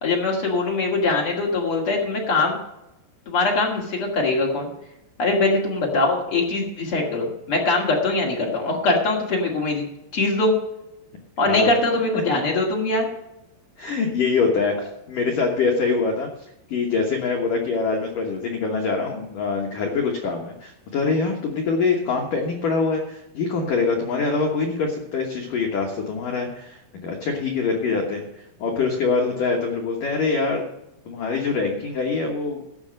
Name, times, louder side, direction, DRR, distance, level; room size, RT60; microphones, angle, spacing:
voice 1, 0.0-2.6 3.2-4.7 5.2-9.8 10.1-10.5 11.4-13.0, left 2 dB, 50° left, -1 dB, 1.6 m, -22 dB
voice 2, 11.4-11.8 13.8-14.8 15.1-16.3 16.7-28.2 28.6-30.6 31.1-32.8, left 4 dB, 85° left, 1 dB, 1.8 m, -24 dB
15.0 x 5.8 x 6.5 m, 0.87 s
omnidirectional pair, 5.9 m